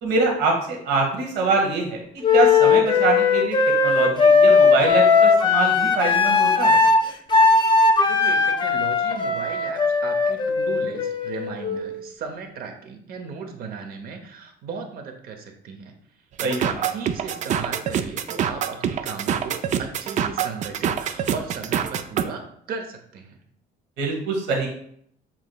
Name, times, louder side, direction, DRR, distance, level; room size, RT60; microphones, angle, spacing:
voice 1, 0.0-6.8 16.4-16.8 24.0-24.7, right 3 dB, 85° right, 0 dB, 1.3 m, -24 dB
Wind instrument woodwind instrument, 2.2-12.0, left 4 dB, 25° left, 0.5 m, -18 dB
voice 2, 8.0-15.9 16.4-23.4, right 5 dB, 60° right, 4 dB, 0.9 m, -36 dB
sound 1, 16.4-22.2, right 8 dB, 45° right, 0.4 m, -25 dB
7.1 x 3.1 x 2.3 m, 0.66 s
cardioid pair, 110°, 17 cm